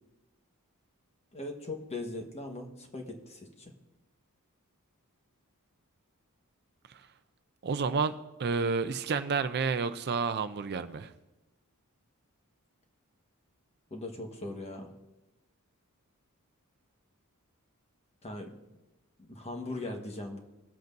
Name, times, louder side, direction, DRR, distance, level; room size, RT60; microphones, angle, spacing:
voice 1, 1.3-3.7 13.9-14.9 18.2-18.6 19.2-20.4, left 2 dB, 30° left, 3 dB, 1.4 m, -40 dB
voice 2, 7.6-8.1 8.4-11.1, right 5 dB, 50° right, 10 dB, 0.5 m, -30 dB
21.0 x 7.8 x 2.6 m, 1.0 s
head